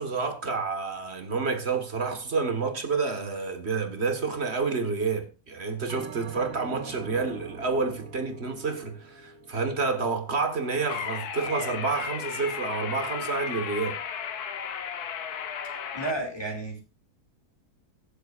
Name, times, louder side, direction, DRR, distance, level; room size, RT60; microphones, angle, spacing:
voice 1, 0.0-14.0, right 4 dB, 45° right, 1.8 m, -29 dB
Bell, 5.9-10.5, right 4 dB, 80° right, 1.9 m, -43 dB
sound 1, 10.9-16.1, left 7 dB, 80° left, 1.5 m, -34 dB
voice 2, 15.9-16.8, right 2 dB, 15° left, 2.4 m, -32 dB
23.5 x 7.8 x 2.5 m
omnidirectional pair, 1.7 m